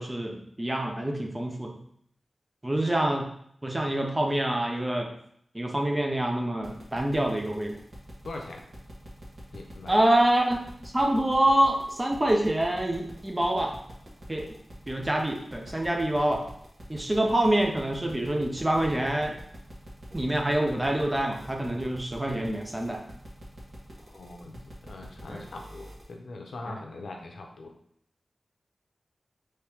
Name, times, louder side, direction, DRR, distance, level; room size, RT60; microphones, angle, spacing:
voice 1, 0.0-1.8 2.6-3.3 3.6-5.1 5.5-7.8 9.9-10.6 10.9-13.7 14.3-14.5 14.9-16.5 16.9-19.3 20.1-23.0 25.3-25.5 26.7-26.8, right 1 dB, 20° right, 2 dB, 0.7 m, -26 dB
sound 1, 6.6-26.1, equal, 50° right, 1.5 m, -45 dB
voice 2, 8.2-8.6 9.5-10.0 24.0-27.7, left 2 dB, 85° left, 2 dB, 0.7 m, -42 dB
4.5 x 3.1 x 3.5 m, 0.69 s
wide cardioid pair, 85°, 0 cm